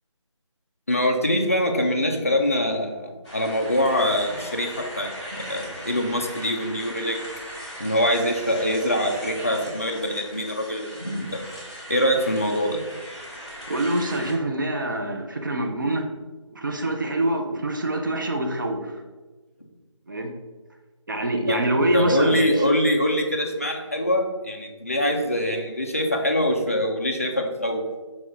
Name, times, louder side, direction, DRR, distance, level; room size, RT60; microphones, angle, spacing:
voice 1, 0.9-4.7 5.0-7.3 7.8-11.4 11.9-12.8 21.5-21.6 21.9-27.8, equal, 30° left, 3 dB, 0.3 m, -24 dB
sound 1, 3.2-14.3, equal, ahead, 0.9 m, -39 dB
voice 2, 13.7-16.1 16.5-19.0 20.1-20.3 21.1-22.6, right 1 dB, 40° right, 3 dB, 0.5 m, -25 dB
6.0 x 2.3 x 3.6 m, 1.2 s
figure-of-eight pair, 170°, 16 cm